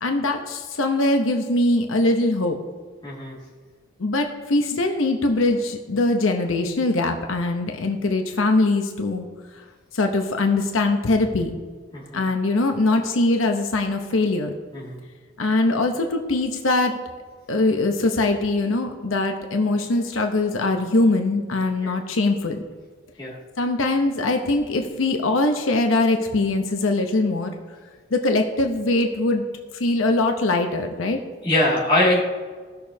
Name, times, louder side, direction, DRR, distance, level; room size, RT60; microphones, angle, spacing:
voice 1, 0.0-2.6 4.0-9.2 9.9-11.5 12.1-14.5 15.4-17.0 17.5-22.6 23.6-27.5 28.1-29.4 29.8-31.2, left 2 dB, 90° left, 5 dB, 0.8 m, -22 dB
voice 2, 3.0-3.4 11.9-12.2 14.7-15.0 21.8-22.0 23.2-23.4 31.4-32.2, left 1 dB, 25° left, -6 dB, 2.2 m, -22 dB
16.5 x 6.7 x 2.8 m, 1.5 s
head